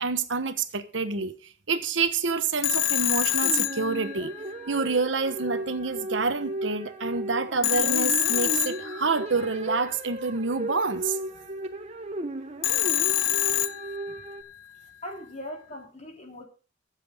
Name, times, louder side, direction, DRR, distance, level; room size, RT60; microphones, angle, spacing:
voice 1, 0.0-1.4 1.7-4.3 4.7-11.2, right 4 dB, 80° right, 1.2 m, -27 dB
Telephone, 2.6-4.6 7.6-9.4 12.6-14.3, left 13 dB, 90° left, 0.8 m, -26 dB
sound 1, 3.4-14.4, right 1 dB, 35° right, 1.1 m, -36 dB
voice 2, 15.0-16.5, left 1 dB, 35° left, 2.9 m, -39 dB
21.5 x 7.6 x 3.6 m
head